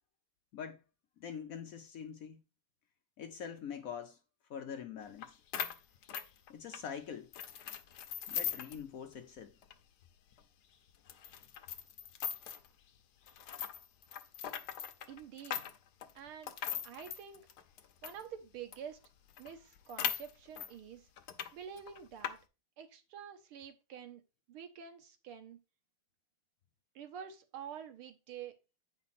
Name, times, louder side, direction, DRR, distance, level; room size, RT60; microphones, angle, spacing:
voice 1, 1.2-2.4 3.2-4.2 4.5-5.4 6.5-7.3 8.3-9.5, left 7 dB, 90° left, 0.7 m, -44 dB
sound 1, 5.2-5.3 5.5-6.9 7.3-8.8 9.1-9.2 9.6-9.7 10.3-10.4 11.1-12.7 13.3-18.2 18.7-18.8 19.0-19.1 19.4-20.7 21.2-21.5 21.8-22.3, left 9 dB, 65° left, 1.1 m, -40 dB
voice 2, 15.1-15.6 16.2-16.5 16.8-17.5 18.0-19.0 19.4-21.1 21.5-22.4 22.8-24.2 24.5-25.6 27.0-28.5, right 8 dB, 85° right, 1.9 m, -48 dB
8.4 x 5.1 x 4.1 m
omnidirectional pair, 2.3 m